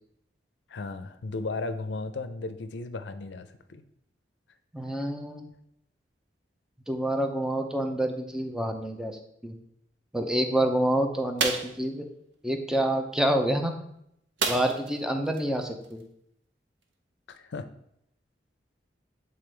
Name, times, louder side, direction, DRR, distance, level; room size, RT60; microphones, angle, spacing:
voice 1, 0.7-3.8 17.3-17.7, left 3 dB, 75° left, 10 dB, 0.5 m, -35 dB
voice 2, 4.7-5.5 6.9-9.6 10.1-12.1 12.4-13.7 14.5-16.0, right 1 dB, 5° right, 5 dB, 0.5 m, -27 dB
sound 1, 11.4-11.8 14.4-15.0 15.3-15.4 15.8-16.0, right 5 dB, 85° right, 0.7 m, -29 dB
7.8 x 3.8 x 3.3 m, 0.75 s
head